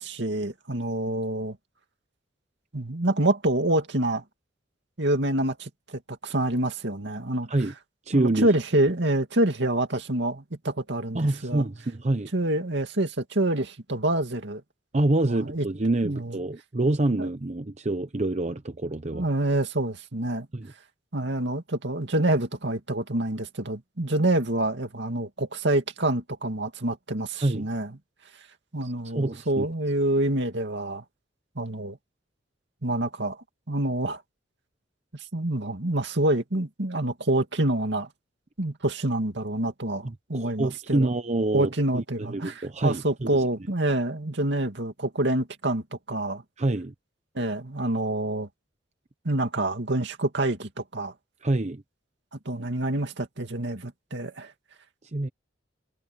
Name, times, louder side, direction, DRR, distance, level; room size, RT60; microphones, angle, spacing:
voice 1, 0.0-1.6 2.7-4.2 5.0-7.5 8.1-11.7 12.3-14.6 15.2-15.7 16.0-16.4 17.2-17.3 19.1-20.5 21.1-28.0 28.7-31.0 31.6-32.0 32.8-33.4 33.7-34.2 35.1-38.1 38.6-41.1 41.5-46.4 47.3-48.5 49.2-51.1 52.5-54.5, right 1 dB, 65° right, 2.5 m, -27 dB
voice 2, 8.1-8.5 11.1-12.3 14.9-19.2 20.5-20.7 27.4-27.7 28.8-29.7 40.0-42.0 42.3-43.4 46.6-46.9 51.4-51.8 55.1-55.3, right 2 dB, 35° right, 0.8 m, -26 dB
head